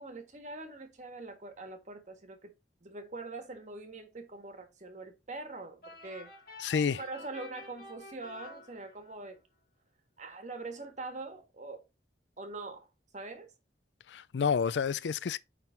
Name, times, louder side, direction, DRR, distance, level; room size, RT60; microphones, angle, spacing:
voice 1, 0.0-2.5 2.8-6.3 7.0-9.4 10.2-11.8 12.4-12.9 13.1-13.5, right 3 dB, 45° right, 1.5 m, -43 dB
sound 1, 5.8-9.3, left 2 dB, 55° left, 2.7 m, -50 dB
voice 2, 6.6-7.0 14.1-15.4, left 6 dB, 85° left, 0.4 m, -29 dB
9.0 x 3.7 x 3.9 m
head